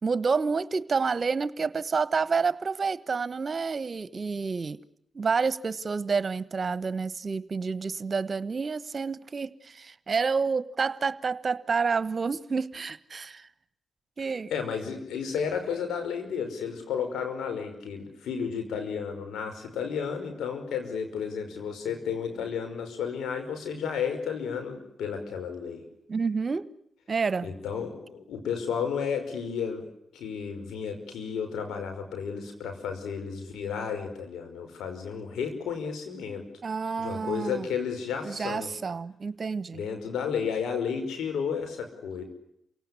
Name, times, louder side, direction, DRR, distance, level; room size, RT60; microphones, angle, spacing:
voice 1, 0.0-4.8 5.1-13.5 14.2-14.5 26.1-26.7 27.1-27.5 36.6-37.7 38.2-39.8, right 5 dB, 50° right, 16 dB, 1.3 m, -29 dB
voice 2, 14.5-25.8 27.4-29.8 30.1-36.5 37.0-38.7 39.7-42.2, left 6 dB, 80° left, 5 dB, 5.3 m, -32 dB
28.5 x 18.0 x 9.8 m, 0.76 s
supercardioid pair, 40°, 0 cm